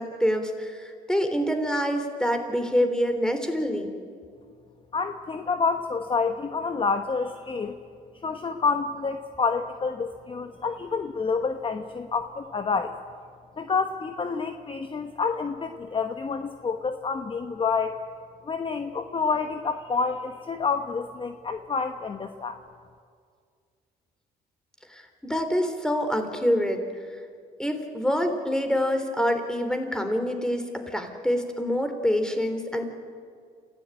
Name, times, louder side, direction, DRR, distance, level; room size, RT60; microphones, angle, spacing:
voice 1, 0.0-3.9 24.9-26.8 27.6-32.8, equal, 5° left, 7 dB, 3.5 m, -26 dB
voice 2, 4.9-7.8 8.2-12.9 13.6-18.0 18.4-22.6, left 5 dB, 30° left, 7 dB, 1.2 m, -28 dB
28.0 x 15.0 x 9.0 m, 2.1 s
cardioid pair, 90°, 18 cm